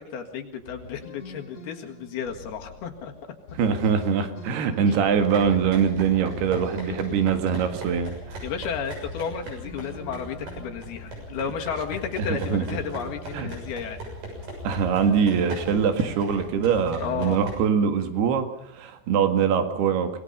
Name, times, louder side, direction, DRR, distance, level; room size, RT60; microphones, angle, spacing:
voice 1, 0.1-3.1 4.9-5.0 6.9-7.0 8.4-14.0 17.0-17.4, left 7 dB, 70° left, 3 dB, 3.7 m, -33 dB
sound 1, 0.6-16.0, left 2 dB, 45° left, 3.4 m, -44 dB
voice 2, 3.6-8.4 12.2-12.6 13.3-13.5 14.6-18.5 18.7-20.2, right 7 dB, 70° right, 7 dB, 3.8 m, -23 dB
running sounds, 5.1-17.6, right 1 dB, 50° right, 8.1 m, -39 dB
26.5 x 20.0 x 5.5 m, 0.69 s
omnidirectional pair, 4.9 m